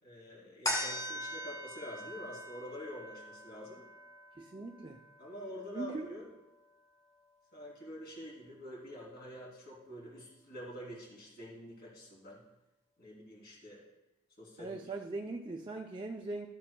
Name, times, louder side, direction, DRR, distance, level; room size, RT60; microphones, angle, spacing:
voice 1, 0.0-3.9 5.2-6.3 7.5-12.4 13.0-13.8 14.4-14.8, equal, 50° left, -3 dB, 3.1 m, -47 dB
sound 1, 0.6-7.4 7.9-8.0, equal, 20° left, 2.2 m, -42 dB
voice 2, 4.4-5.0 5.7-6.2 14.6-16.5, right 3 dB, 25° right, 3 dB, 0.4 m, -40 dB
13.5 x 8.6 x 2.3 m, 0.98 s
head